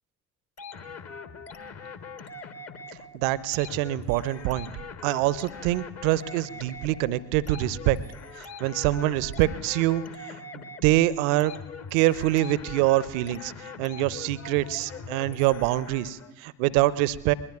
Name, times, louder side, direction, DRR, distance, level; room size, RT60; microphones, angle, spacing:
sound 1, 0.6-16.3, left 4 dB, 35° left, 1.1 m, -42 dB
voice 1, 3.1-4.7 5.0-8.0 8.6-10.0 10.5-11.5 11.9-13.5 13.8-17.3, right 15 dB, 60° right, 20 dB, 0.6 m, -25 dB
21.0 x 20.5 x 2.4 m, 1.0 s
figure-of-eight pair, 50°, 43 cm